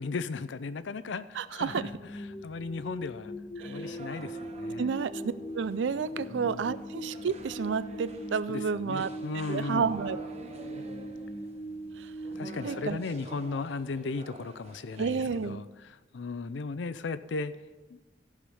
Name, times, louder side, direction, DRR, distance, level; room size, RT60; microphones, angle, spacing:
voice 1, 0.0-1.9 2.4-3.3 3.7-4.9 6.2-6.7 8.5-9.9 12.4-17.5 17.9-18.0, left 4 dB, 80° left, 14 dB, 0.5 m, -36 dB
voice 2, 1.4-1.8 3.6-3.8 4.8-9.1 9.5-10.2 12.0-12.1 12.6-13.0 15.0-15.6, right 6 dB, 75° right, 15 dB, 0.4 m, -31 dB
sound 1, 1.6-13.8, equal, 20° left, 0.5 m, -41 dB
sound 2, 3.6-15.5, right 2 dB, 35° right, 1.0 m, -48 dB
14.5 x 5.0 x 5.5 m, 1.2 s
head